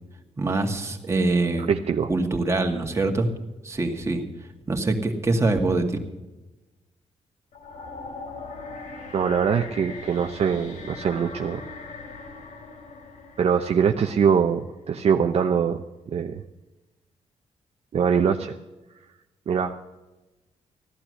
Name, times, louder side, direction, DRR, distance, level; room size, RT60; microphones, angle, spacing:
voice 1, 0.4-1.7 2.1-3.3 3.6-4.2 4.7-6.0, right 2 dB, 20° right, 3 dB, 2.1 m, -24 dB
voice 2, 1.7-2.1 9.1-11.6 13.4-16.4 17.9-18.5 19.5-19.8, right 7 dB, 55° right, 5 dB, 0.8 m, -23 dB
sound 1, 7.5-14.6, left 3 dB, 85° left, 3.3 m, -40 dB
16.0 x 11.5 x 6.4 m, 1.1 s
cardioid pair, 120°, 12 cm